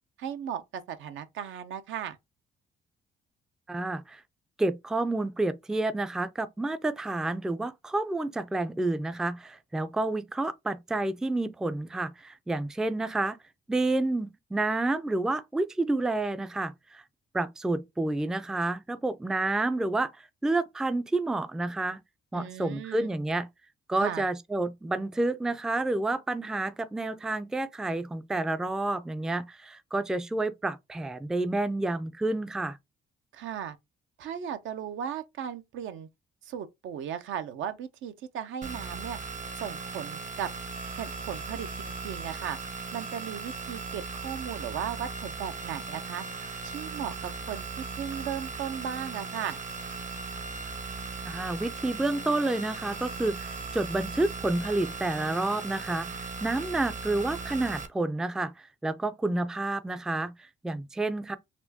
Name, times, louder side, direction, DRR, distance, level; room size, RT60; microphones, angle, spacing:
voice 1, 0.2-2.2 22.3-23.1 24.0-24.2 33.3-33.8 34.2-36.1 36.4-39.2 39.5-40.5 40.9-42.6 42.9-46.2 46.6-49.6, right 9 dB, 80° right, 0.6 m, -36 dB
voice 2, 3.7-4.2 4.6-13.4 13.7-17.0 17.3-22.0 22.3-23.5 23.9-32.8 51.3-61.4, right 2 dB, 5° right, 0.3 m, -29 dB
sound 1, 38.6-57.9, right 4 dB, 40° right, 0.7 m, -38 dB
4.2 x 2.2 x 2.7 m
cardioid pair, 90°, 20 cm